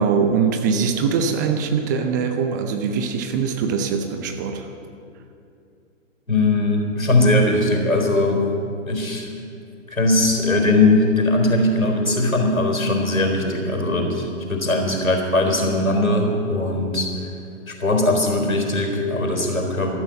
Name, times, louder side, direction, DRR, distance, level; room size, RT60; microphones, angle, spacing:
voice 1, 0.0-4.7, right 6 dB, 15° right, 6 dB, 0.4 m, -22 dB
voice 2, 6.3-8.5 8.9-9.3 9.9-17.3 17.7-19.9, left 2 dB, 85° left, 3 dB, 4.1 m, -20 dB
13.0 x 13.0 x 7.7 m, 2.5 s
figure-of-eight pair, 120°, 40 cm